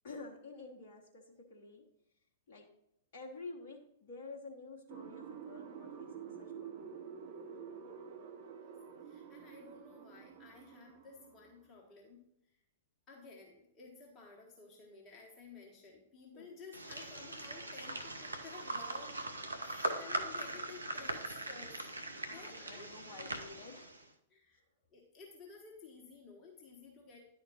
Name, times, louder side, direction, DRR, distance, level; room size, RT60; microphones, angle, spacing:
voice 1, 0.0-1.9 2.5-2.7 3.1-7.0 16.3-16.5 22.3-23.9, left 3 dB, 50° left, -1 dB, 1.1 m, -50 dB
sound 1, 4.9-11.6, right 7 dB, 45° right, 0.8 m, -49 dB
voice 2, 9.0-12.2 13.1-19.2 19.6-21.8 22.1-23.3 24.3-24.6 24.9-27.3, left 4 dB, 25° left, -2 dB, 1.4 m, -54 dB
sound 2, 16.7-24.0, right 2 dB, 80° right, 0.8 m, -41 dB
10.5 x 4.3 x 4.1 m, 0.79 s
figure-of-eight pair, 105°, 0 cm